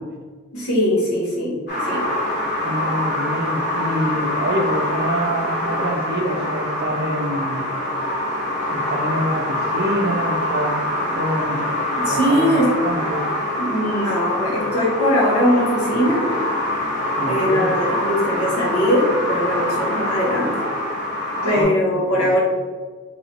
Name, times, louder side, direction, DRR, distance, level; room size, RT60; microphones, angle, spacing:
voice 1, 0.5-2.1 12.0-12.7 13.6-16.3 17.3-20.6 21.4-22.4, equal, 70° left, -4 dB, 1.2 m, -20 dB
sound 1, 1.7-21.6, left 1 dB, 50° left, 1.3 m, -24 dB
voice 2, 2.6-7.6 8.7-10.8 11.1-11.8 12.1-13.3 17.2-17.7 21.5-21.7 22.2-22.3, right 1 dB, 45° right, 3 dB, 0.5 m, -26 dB
2.9 x 2.7 x 4.4 m, 1.5 s
head